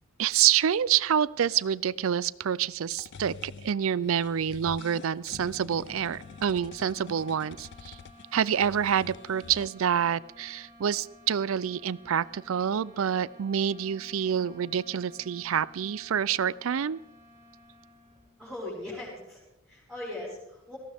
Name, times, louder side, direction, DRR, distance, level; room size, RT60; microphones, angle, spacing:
voice 1, 0.2-8.0 8.3-17.0, right 8 dB, 70° right, 20 dB, 0.4 m, -27 dB
sound 1, 2.8-9.7, left 5 dB, 55° left, 0.4 m, -47 dB
sound 2, 5.8-18.5, equal, 15° right, 2.7 m, -55 dB
voice 2, 18.4-20.8, left 1 dB, ahead, -8 dB, 4.6 m, -39 dB
18.5 x 15.5 x 3.5 m, 0.92 s
head